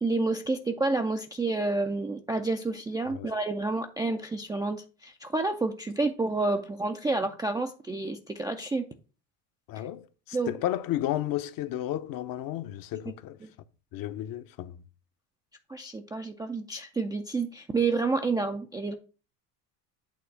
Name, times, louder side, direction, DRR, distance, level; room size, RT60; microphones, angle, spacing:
voice 1, 0.0-8.9 10.3-10.5 15.7-18.9, right 3 dB, 10° right, 0.3 m, -29 dB
voice 2, 9.7-13.4 13.9-14.8, left 13 dB, 45° left, 0.7 m, -33 dB
8.6 x 3.1 x 5.7 m
hypercardioid pair, 85°, 50 cm